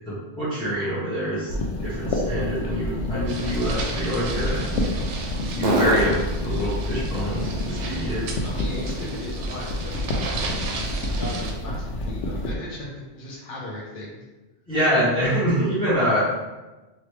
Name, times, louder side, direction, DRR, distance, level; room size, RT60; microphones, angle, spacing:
voice 1, 0.0-1.5 1.8-4.7 5.5-6.2 6.4-8.4 14.7-16.2, equal, 5° left, -13 dB, 1.1 m, -25 dB
sound 1, 0.7-9.7 10.2-13.9, right 2 dB, 50° right, 0.6 m, -35 dB
sound 2, 1.5-12.5, left 1 dB, 80° left, 0.9 m, -28 dB
sound 3, 3.3-11.5, right 4 dB, 80° right, 0.9 m, -35 dB
voice 2, 8.4-10.0 11.0-12.9 13.1-14.2, left 1 dB, 50° left, -5 dB, 0.8 m, -37 dB
3.1 x 2.8 x 3.1 m, 1.1 s
omnidirectional pair, 1.2 m